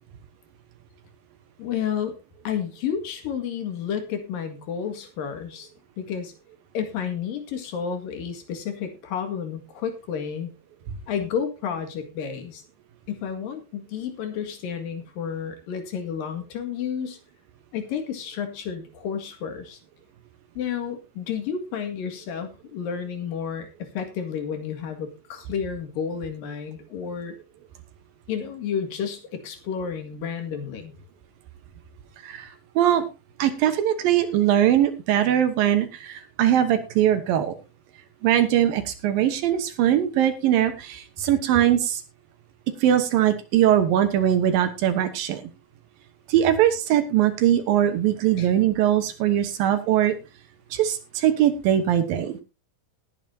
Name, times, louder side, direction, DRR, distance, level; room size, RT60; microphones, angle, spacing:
voice 1, 1.6-2.2 2.5-5.7 6.0-6.3 6.7-10.5 11.1-12.6 13.1-17.2 17.7-19.8 20.6-27.4 28.3-30.9 48.4-48.5, left 7 dB, 75° left, 7 dB, 3.7 m, -31 dB
voice 2, 32.2-33.0 33.4-37.5 38.2-42.0 42.8-45.4 46.3-50.2 50.7-52.4, right 11 dB, 80° right, 8 dB, 2.9 m, -21 dB
19.5 x 9.2 x 2.8 m, 0.27 s
omnidirectional pair, 4.1 m